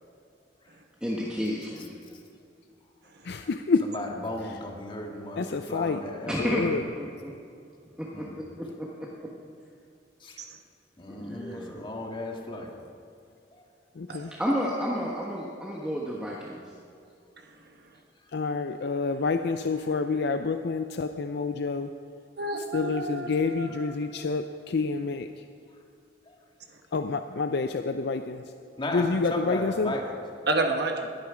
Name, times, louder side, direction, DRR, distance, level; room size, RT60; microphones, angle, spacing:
voice 1, 1.0-2.0 6.3-7.3 8.0-9.1 11.1-11.9 14.3-16.6, equal, 5° right, -4 dB, 1.3 m, -31 dB
voice 2, 3.2-3.9 4.4-4.6 5.4-6.0 6.4-6.8 14.0-14.3 18.3-21.9 22.7-25.4 26.9-28.4 28.9-30.0, left 4 dB, 65° left, 8 dB, 0.5 m, -28 dB
voice 3, 3.9-6.3 8.1-8.3 10.2-10.4 11.0-12.7 28.8-30.0, left 1 dB, 30° left, 0 dB, 1.9 m, -35 dB
voice 4, 22.4-23.9 30.5-31.1, right 2 dB, 65° right, 3 dB, 1.3 m, -30 dB
21.5 x 9.5 x 4.9 m, 2.4 s
head